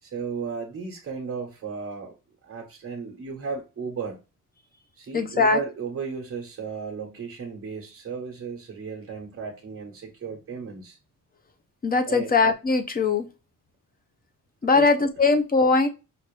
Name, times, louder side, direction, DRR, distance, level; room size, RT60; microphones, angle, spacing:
voice 1, 0.0-2.1 2.4-4.2 5.0-11.0 12.0-12.3 14.7-14.9, right 5 dB, 40° right, 1.1 m, -34 dB
voice 2, 5.1-5.6 11.8-13.3 14.6-15.9, left 3 dB, 30° left, 0.7 m, -20 dB
6.0 x 2.6 x 3.2 m
wide cardioid pair, 155°, 32 cm